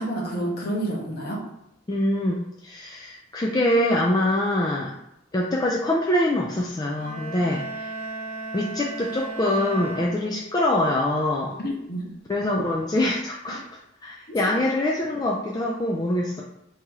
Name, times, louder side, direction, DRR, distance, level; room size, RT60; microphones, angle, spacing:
voice 1, 0.0-1.4 11.6-12.1 14.3-14.4, right 1 dB, 50° left, -2 dB, 0.9 m, -29 dB
voice 2, 1.9-4.9 5.3-7.9 8.5-11.6 12.3-13.6 14.0-16.4, left 1 dB, 20° left, -3 dB, 0.3 m, -24 dB
sound 1, 6.9-10.8, right 2 dB, 35° right, 0.7 m, -36 dB
2.9 x 2.8 x 3.6 m, 0.83 s
head